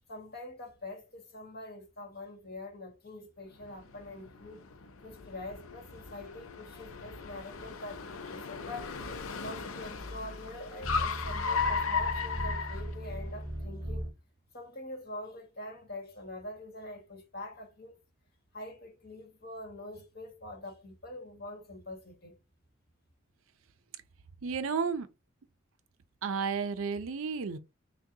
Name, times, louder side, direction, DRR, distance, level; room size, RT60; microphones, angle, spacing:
voice 1, 0.1-4.6 5.0-8.0 8.3-9.0 9.4-14.1 14.5-18.0 18.5-22.4, left 2 dB, 50° left, 1.6 m, -44 dB
Car, 3.6-13.5, left 5 dB, 85° left, 0.6 m, -36 dB
sound 1, 5.1-14.1, equal, 15° left, 2.1 m, -41 dB
voice 2, 24.4-25.1 26.2-27.6, right 5 dB, 90° right, 0.6 m, -32 dB
6.0 x 2.3 x 2.8 m
head